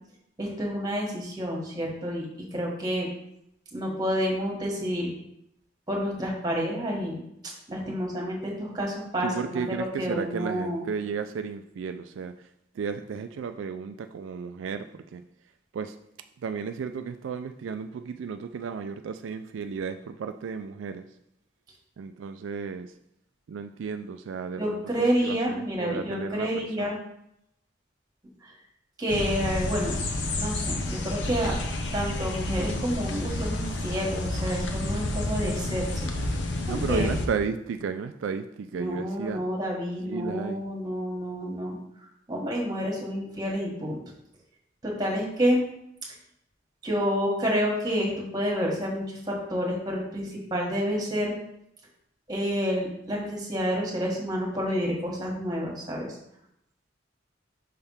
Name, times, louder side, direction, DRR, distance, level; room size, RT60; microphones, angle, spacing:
voice 1, 0.4-2.3 2.5-3.1 3.7-5.1 5.9-10.8 24.6-26.9 28.4-28.5 29.0-30.0 30.4-31.5 31.9-36.1 36.7-37.2 38.8-41.8 42.3-44.0 44.8-45.6 46.8-51.3 52.3-56.1, equal, 20° right, -2 dB, 1.6 m, -29 dB
voice 2, 9.2-12.5 12.8-15.2 15.7-16.0 16.4-21.1 22.0-22.9 23.5-26.5 26.8-27.0 36.7-39.4 40.1-40.6, right 6 dB, 85° right, 8 dB, 0.3 m, -33 dB
sound 1, 29.1-37.3, left 2 dB, 70° left, 0.8 m, -30 dB
5.6 x 3.4 x 5.6 m, 0.79 s
head